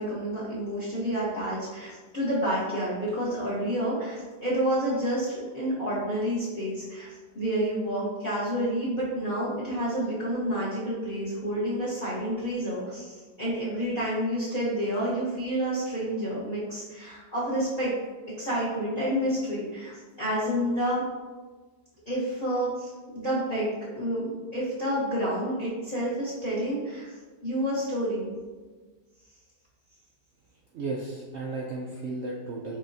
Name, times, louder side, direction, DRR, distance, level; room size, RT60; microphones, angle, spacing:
voice 1, 0.0-17.9 18.4-21.0 22.1-27.2 27.4-28.3, equal, 35° left, -10 dB, 1.0 m, -29 dB
voice 2, 30.7-32.8, right 3 dB, 75° right, -2 dB, 0.6 m, -34 dB
5.5 x 3.5 x 2.6 m, 1.4 s
omnidirectional pair, 1.8 m